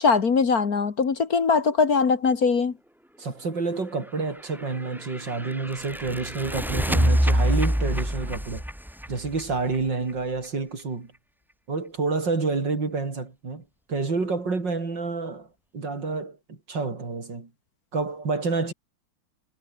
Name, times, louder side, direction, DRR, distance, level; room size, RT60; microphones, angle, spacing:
voice 1, 0.0-2.7, left 5 dB, 50° left, 2.1 m, -21 dB
voice 2, 3.2-8.6 9.1-11.1 11.7-15.5 15.7-17.5 17.9-18.7, right 4 dB, 60° right, 4.5 m, -29 dB
sound 1, 4.4-10.1, equal, ahead, 0.5 m, -26 dB
omnidirectional pair, 2.1 m